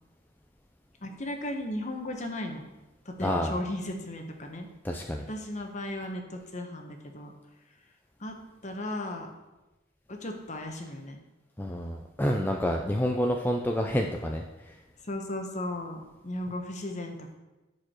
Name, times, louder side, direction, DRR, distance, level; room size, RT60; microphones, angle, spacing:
voice 1, 1.0-2.6 3.0-4.7 5.3-7.3 8.2-8.3 8.6-9.3 10.1-11.2 15.0-17.3, left 1 dB, 40° left, 3 dB, 1.2 m, -36 dB
voice 2, 3.2-3.5 4.8-5.3 11.6-14.7, equal, 10° left, 1 dB, 0.5 m, -28 dB
14.5 x 4.9 x 4.5 m, 1.1 s
head